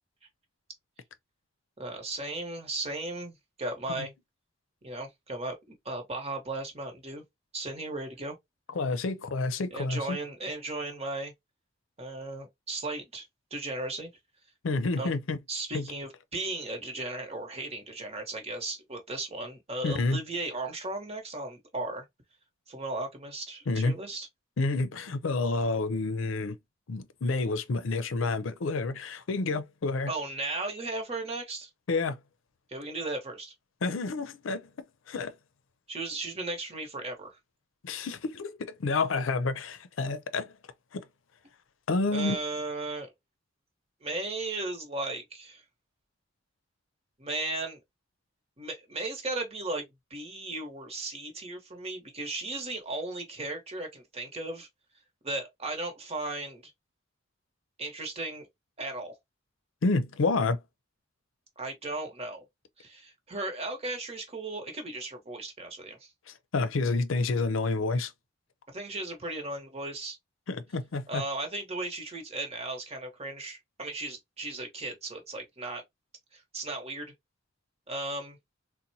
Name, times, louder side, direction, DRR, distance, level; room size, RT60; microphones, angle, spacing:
voice 1, 1.8-4.1 4.8-7.2 7.5-8.4 9.7-11.3 12.0-13.3 13.5-14.1 15.0-15.2 15.5-22.0 22.7-24.3 30.1-31.7 32.7-33.5 35.9-37.4 42.1-43.1 44.0-45.6 47.2-47.8 48.6-49.8 50.1-54.7 55.2-56.7 57.8-58.5 58.8-59.1 61.6-62.4 62.8-66.1 68.7-70.2 71.1-75.8 76.3-77.1 77.9-78.4, right 2 dB, 35° right, 1.0 m, -36 dB
voice 2, 8.7-10.2 14.6-15.4 15.7-15.9 19.8-20.2 23.7-24.0 24.6-26.6 26.9-30.1 31.9-32.2 33.8-34.7 35.1-35.3 37.8-40.5 40.9-41.0 41.9-42.4 59.8-60.6 66.5-68.1 70.5-71.2, left 3 dB, 85° left, 0.5 m, -29 dB
3.9 x 2.1 x 2.7 m
head